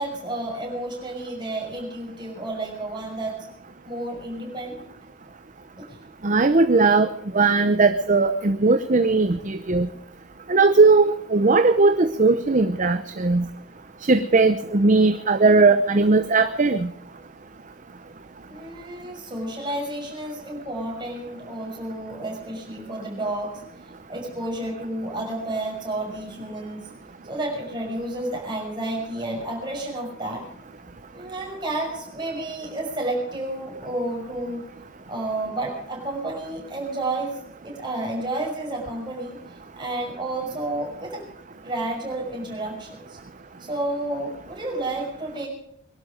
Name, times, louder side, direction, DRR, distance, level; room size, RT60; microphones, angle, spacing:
voice 1, 0.0-3.4 3.8-4.9 5.8-6.0 18.5-23.6 24.1-26.9 27.3-30.4 31.1-34.6 35.1-37.4 37.6-39.4 39.8-41.2 41.6-43.2 43.6-45.5, right 1 dB, 20° right, -2 dB, 6.2 m, -31 dB
voice 2, 6.2-7.1 7.3-9.9 10.5-13.5 14.0-16.9, right 3 dB, 35° right, 10 dB, 0.7 m, -18 dB
23.0 x 12.0 x 5.1 m, 0.78 s
head